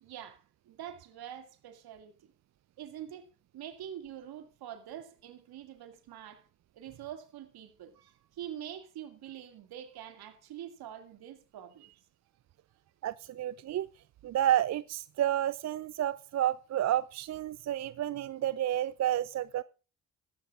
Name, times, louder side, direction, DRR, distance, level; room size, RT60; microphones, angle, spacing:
voice 1, 0.0-2.3 2.8-3.3 3.5-6.5 6.7-11.9, right 10 dB, 65° right, 2.3 m, -45 dB
voice 2, 13.0-13.9 14.2-19.6, right 12 dB, 40° right, 0.5 m, -30 dB
17.5 x 14.0 x 2.4 m
hypercardioid pair, 45°, 40 cm